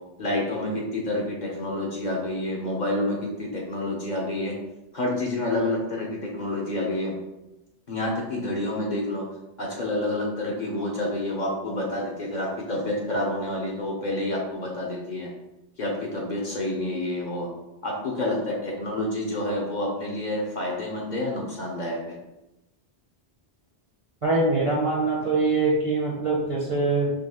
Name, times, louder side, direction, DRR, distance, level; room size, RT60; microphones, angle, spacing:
voice 1, 0.2-4.5 4.9-7.1 7.9-9.2 9.6-15.3 15.8-17.5 17.8-22.1, left 1 dB, 50° left, -2 dB, 0.8 m, -28 dB
voice 2, 24.2-27.1, right 3 dB, 35° right, -4 dB, 0.7 m, -23 dB
3.9 x 2.9 x 2.9 m, 0.96 s
omnidirectional pair, 1.1 m